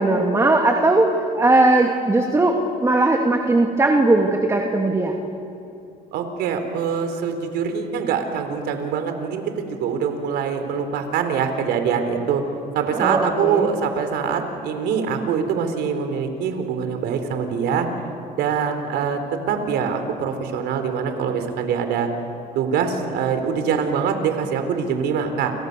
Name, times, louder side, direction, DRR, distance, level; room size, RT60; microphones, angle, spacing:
voice 1, 0.0-5.2 12.9-13.7, right 2 dB, 15° right, 2 dB, 2.6 m, -18 dB
voice 2, 6.1-12.4 12.7-17.9 18.4-19.2 19.5-22.1 22.5-25.5, right 6 dB, 80° right, 7 dB, 4.1 m, -24 dB
29.5 x 29.5 x 6.9 m, 2.8 s
cardioid pair, 110°, 17 cm